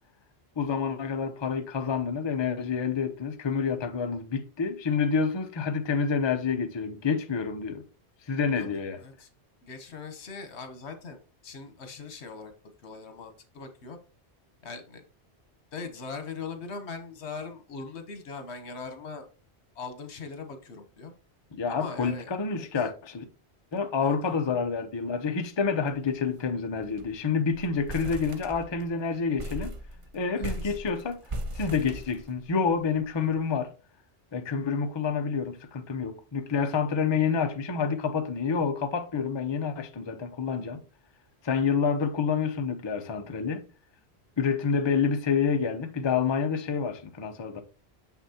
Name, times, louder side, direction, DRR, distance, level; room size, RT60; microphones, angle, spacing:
voice 1, 0.6-7.8 8.3-9.0 21.5-23.2 23.7-29.7 30.1-31.2 31.5-33.7 34.3-40.8 41.4-43.6 44.4-47.6, left 5 dB, 30° left, 0.6 m, -28 dB
voice 2, 8.6-9.3 9.6-12.5 12.8-14.0 14.6-15.0 15.7-19.3 19.7-21.1 21.7-22.7 24.0-24.3 30.4-30.7, left 4 dB, 75° left, 1.3 m, -41 dB
sound 1, 25.9-26.1 26.4-26.5 26.8-27.2 27.5-28.9 29.4-32.7, right 1 dB, 35° right, 0.6 m, -38 dB
6.7 x 5.9 x 2.8 m
omnidirectional pair, 1.1 m